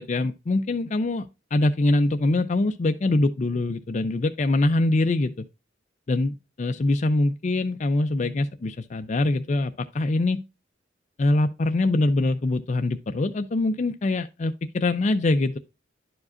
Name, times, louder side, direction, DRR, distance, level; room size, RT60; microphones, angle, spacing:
voice 1, 0.0-5.5 6.1-10.4 11.2-15.6, left 2 dB, 40° left, 0.4 m, -24 dB
10.5 x 4.9 x 2.5 m
head